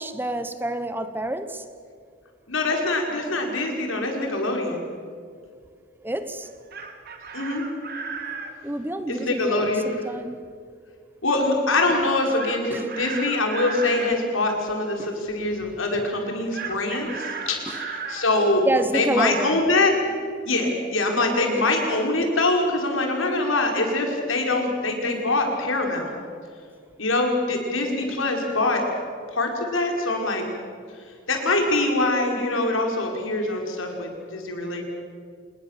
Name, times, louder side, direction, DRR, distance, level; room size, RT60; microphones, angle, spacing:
voice 1, 0.0-1.6 6.0-6.5 8.6-10.4 12.7-12.9 15.0-15.1 17.7-17.8 18.6-19.6 21.6-21.7, right 1 dB, 10° right, 10 dB, 1.0 m, -28 dB
voice 2, 2.5-4.8 7.3-7.6 9.1-9.9 11.2-18.6 18.9-20.1 20.5-26.1 27.0-28.8 29.3-30.4 31.3-34.8, left 2 dB, 85° left, 2 dB, 5.1 m, -24 dB
Chicken rooster, 6.5-8.5 12.4-14.1 16.5-18.3, right 5 dB, 50° right, 2.6 m, -34 dB
27.5 x 20.5 x 7.4 m, 2.2 s
head